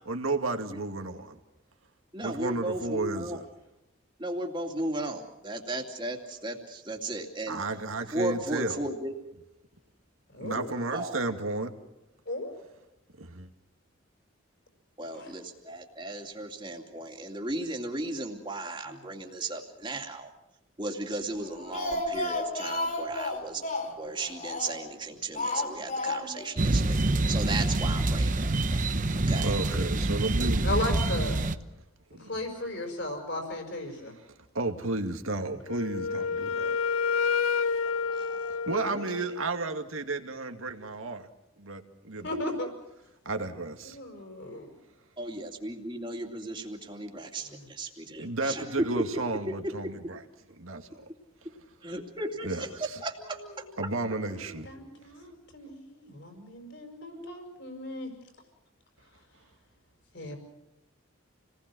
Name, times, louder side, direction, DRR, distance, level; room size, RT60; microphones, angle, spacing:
voice 1, 0.1-1.4 2.2-3.5 7.5-8.8 10.4-11.7 13.2-13.5 29.4-30.7 32.1-32.4 34.6-36.8 38.7-41.3 41.6-42.4 43.3-44.0 48.2-50.2 50.6-50.9 52.4-52.7 53.8-54.7, right 3 dB, 80° right, 2.3 m, -32 dB
voice 2, 2.1-3.4 4.2-7.6 8.1-9.1 10.9-11.2 15.0-20.3 20.8-29.9 38.1-38.6 38.9-39.0 45.2-49.0 49.5-49.6 51.8-53.7 57.1-57.3, right 2 dB, 25° right, 2.7 m, -35 dB
voice 3, 10.3-10.7 12.3-12.5 15.1-15.3 30.6-31.4 32.3-34.0 42.2-42.7 43.9-44.7 54.3-58.1 60.1-60.4, left 1 dB, 55° left, 5.3 m, -35 dB
Speech, 21.4-24.9 25.4-26.5 26.8-26.9 27.2-27.3, left 2 dB, 40° left, 3.9 m, -32 dB
sound 1, 26.6-31.6, right 2 dB, 40° right, 0.9 m, -26 dB
Wind instrument woodwind instrument, 35.7-39.5, left 5 dB, 90° left, 0.8 m, -29 dB
29.0 x 19.5 x 6.3 m
head